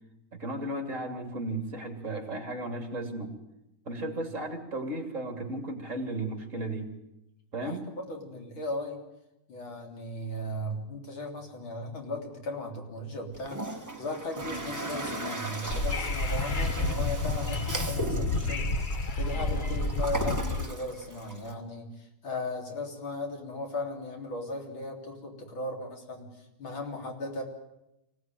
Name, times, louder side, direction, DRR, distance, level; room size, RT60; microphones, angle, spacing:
voice 1, 0.3-3.3 3.8-6.9 7.5-7.9, right 2 dB, 40° right, 5 dB, 3.4 m, -35 dB
voice 2, 7.6-9.0 9.5-13.6 14.0-18.7 19.2-27.4, left 1 dB, 90° left, 2 dB, 4.3 m, -37 dB
Toilet flush, 13.3-21.5, right 1 dB, 10° right, 1.7 m, -37 dB
Wind / Subway metro underground, 15.6-20.6, left 2 dB, 40° left, 0.8 m, -30 dB
25.0 x 17.5 x 9.3 m, 0.89 s
omnidirectional pair, 2.1 m